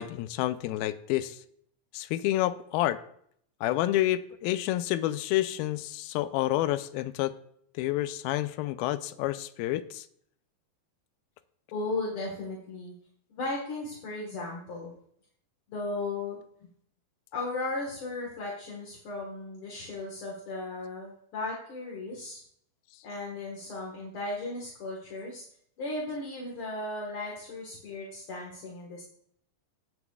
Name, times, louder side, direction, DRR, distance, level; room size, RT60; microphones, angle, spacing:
voice 1, 0.0-1.4 1.9-3.0 3.6-7.3 7.8-10.1, left 14 dB, 90° left, 12 dB, 2.4 m, -29 dB
voice 2, 11.7-12.9 13.3-14.9 15.7-16.4 17.3-22.4 23.0-25.4 25.8-29.0, left 2 dB, 50° left, -3 dB, 1.9 m, -36 dB
17.0 x 8.0 x 2.4 m, 0.66 s
omnidirectional pair, 4.1 m